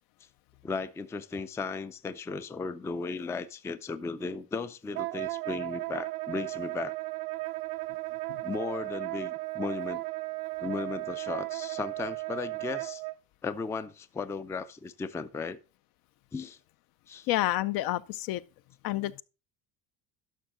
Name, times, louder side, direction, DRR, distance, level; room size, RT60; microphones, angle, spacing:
voice 1, 0.6-6.9 8.4-10.0 10.6-13.0 13.4-15.6 16.3-16.6 17.1-17.3, left 4 dB, 10° left, 0.3 m, -36 dB
Wind instrument woodwind instrument, 4.9-13.1, right 23 dB, 75° right, 0.6 m, -35 dB
voice 2, 17.3-18.4 18.8-19.2, left 15 dB, 65° left, 0.6 m, -29 dB
12.0 x 5.6 x 3.8 m
cardioid pair, 115°, 39 cm